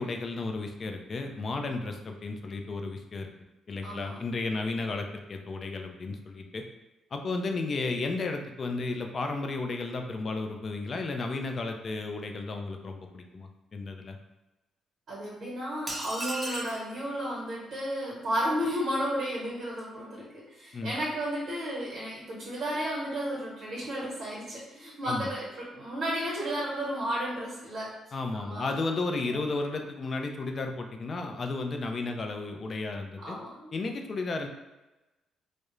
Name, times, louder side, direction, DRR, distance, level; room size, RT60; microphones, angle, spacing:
voice 1, 0.0-3.3 3.7-6.6 7.1-14.2 20.7-20.9 25.0-25.3 28.1-33.4 33.7-34.5, left 3 dB, 45° left, 4 dB, 0.3 m, -33 dB
voice 2, 3.8-4.1 15.1-27.9 28.3-28.7 29.3-29.4 33.2-33.7, equal, 55° right, -6 dB, 0.9 m, -33 dB
sound 1, 15.9-16.9, right 2 dB, 20° right, 0.5 m, -35 dB
2.3 x 2.0 x 3.0 m, 1.0 s
cardioid pair, 90°, 0 cm